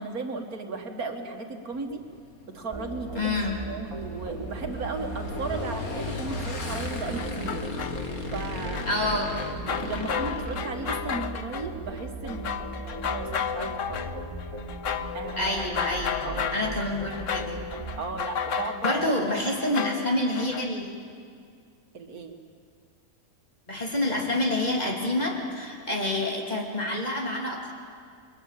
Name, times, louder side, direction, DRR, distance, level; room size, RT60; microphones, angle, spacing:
voice 1, 0.0-2.0 2.5-7.6 8.3-8.9 9.6-12.6 12.8-14.0 15.1-15.7 16.2-16.6 18.0-19.1 21.9-22.4, right 3 dB, 85° right, 4 dB, 2.4 m, -35 dB
Motorcycle / Engine, 1.7-11.4, left 2 dB, 85° left, 2.5 m, -37 dB
sound 1, 2.7-18.0, right 1 dB, 25° right, 4.1 m, -38 dB
voice 2, 3.1-3.6 8.9-9.3 15.4-17.6 18.8-21.0 23.7-27.7, left 1 dB, 30° left, 0 dB, 3.1 m, -28 dB
sound 2, 7.2-8.0 8.7-11.7 12.0-20.7, left 7 dB, 60° left, 1.3 m, -33 dB
28.5 x 22.5 x 7.6 m, 2.3 s
omnidirectional pair, 1.5 m